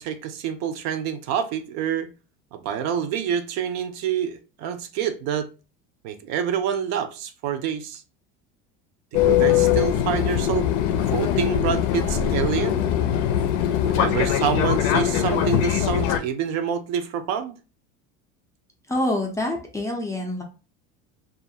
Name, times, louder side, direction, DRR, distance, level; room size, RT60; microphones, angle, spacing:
voice 1, 0.0-2.1 2.5-5.5 6.0-8.0 9.1-10.7 11.1-12.8 13.8-17.6, right 8 dB, 55° right, 0.4 m, -27 dB
Fixed-wing aircraft airplane, 9.1-16.2, left 10 dB, 80° left, 0.5 m, -22 dB
voice 2, 18.9-20.4, left 1 dB, 10° left, 0.4 m, -26 dB
2.4 x 2.3 x 2.6 m
supercardioid pair, 125°, 33 cm